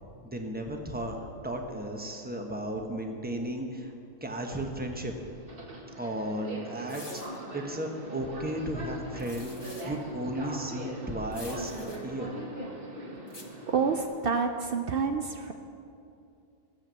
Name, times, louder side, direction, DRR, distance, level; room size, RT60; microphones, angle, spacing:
voice 1, 0.2-3.9 4.2-5.1 6.0-7.2 7.5-12.3, right 1 dB, 5° right, 2 dB, 1.0 m, -34 dB
Subway metro underground, 4.5-14.1, right 1 dB, 35° right, 1.7 m, -41 dB
sound 1, 6.9-7.4 9.2-10.0 11.3-12.0 13.3-13.4, left 2 dB, 20° left, 1.0 m, -47 dB
voice 2, 13.7-15.5, right 5 dB, 85° right, 6 dB, 0.5 m, -28 dB
14.5 x 7.4 x 7.6 m, 2.6 s
omnidirectional pair, 1.7 m